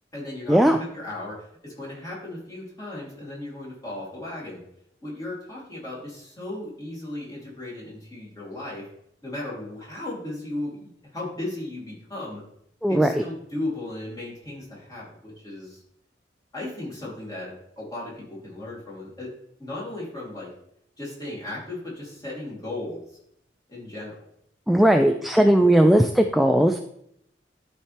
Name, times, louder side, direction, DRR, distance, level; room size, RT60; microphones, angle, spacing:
voice 1, 0.1-4.6 5.0-8.9 9.2-12.4 12.9-15.8 16.5-19.3 19.6-20.5 21.0-23.2 23.7-24.2, left 1 dB, 20° left, -6 dB, 2.9 m, -36 dB
voice 2, 12.8-13.2 24.7-26.8, right 1 dB, ahead, 5 dB, 0.3 m, -18 dB
12.0 x 4.3 x 3.3 m, 0.73 s
head